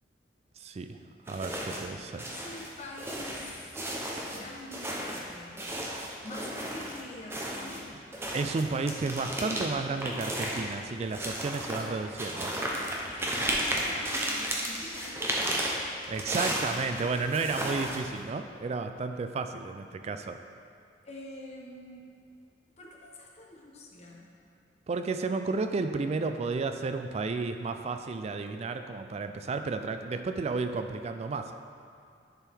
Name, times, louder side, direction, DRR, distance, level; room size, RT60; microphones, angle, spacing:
voice 1, 0.6-1.0 1.3-2.3 8.3-12.6 16.1-20.4 24.9-31.5, right 4 dB, 35° right, 7 dB, 0.3 m, -32 dB
sound 1, 1.3-1.9 2.2-7.0 7.3-18.2, right 1 dB, 15° right, 0.8 m, -34 dB
voice 2, 2.3-3.6 4.2-5.6 6.2-8.0 13.1-15.7 17.1-17.2 21.0-22.1 22.8-24.3, left 2 dB, 40° left, -1 dB, 1.0 m, -45 dB
sound 2, 11.8-12.1 13.3-13.6 15.3-16.0, right 1 dB, 60° right, 1.5 m, -49 dB
10.0 x 4.6 x 3.5 m, 2.5 s
head